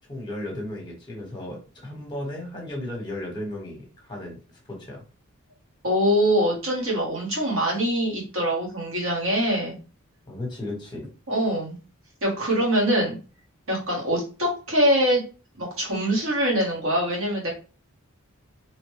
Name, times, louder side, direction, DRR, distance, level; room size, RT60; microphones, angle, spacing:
voice 1, 0.1-4.4 4.7-5.0 10.3-11.1, left 1 dB, 20° left, 0 dB, 1.0 m, -35 dB
voice 2, 5.8-9.8 11.3-11.8 12.2-13.1 13.7-15.2 15.6-17.5, equal, 65° right, -2 dB, 1.3 m, -23 dB
3.0 x 2.1 x 3.1 m, 0.35 s
head